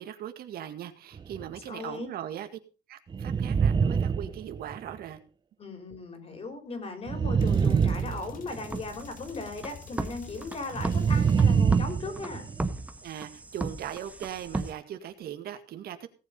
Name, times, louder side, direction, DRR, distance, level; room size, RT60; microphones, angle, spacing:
voice 1, 0.0-2.5 2.9-5.2 13.0-16.1, right 10 dB, 65° right, 8 dB, 1.9 m, -39 dB
sound 1, 1.1-1.6 3.1-5.0 7.1-8.8 10.7-12.7, right 6 dB, 25° right, 0.7 m, -25 dB
voice 2, 1.7-2.1 5.6-12.4, left 3 dB, 35° left, 5 dB, 5.0 m, -37 dB
sound 2, 7.4-11.8, left 6 dB, 55° left, 3.1 m, -49 dB
sound 3, 8.5-14.7, right 2 dB, 10° right, 1.4 m, -37 dB
17.5 x 7.3 x 5.3 m, 0.35 s
cardioid pair, 110°, 17 cm